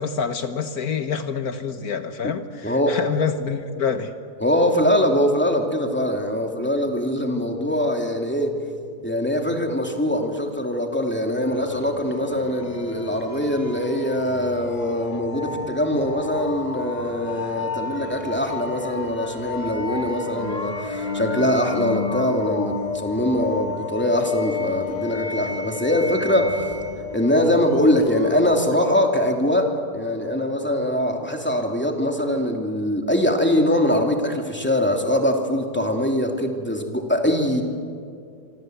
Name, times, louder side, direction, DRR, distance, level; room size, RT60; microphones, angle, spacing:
voice 1, 0.0-4.1, left 6 dB, 65° left, 9 dB, 1.5 m, -27 dB
voice 2, 2.6-3.0 4.4-8.6 9.0-26.6 27.1-37.6, left 1 dB, 5° left, 2 dB, 2.7 m, -22 dB
sound 1, 11.4-29.0, left 4 dB, 25° left, 1.6 m, -32 dB
26.0 x 25.5 x 8.0 m, 2.4 s
omnidirectional pair, 1.8 m